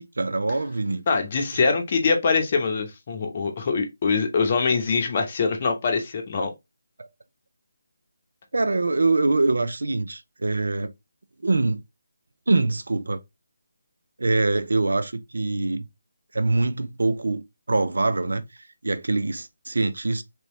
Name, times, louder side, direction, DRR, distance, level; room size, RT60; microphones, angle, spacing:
voice 1, 0.0-1.0 7.0-7.1 8.5-10.9 11.4-11.8 12.5-13.2 14.2-15.8 16.3-18.4 18.8-20.2, right 3 dB, 70° right, 0.4 m, -24 dB
voice 2, 1.1-6.5, left 4 dB, 35° left, 0.8 m, -23 dB
3.1 x 2.9 x 3.0 m
figure-of-eight pair, 155°, 0 cm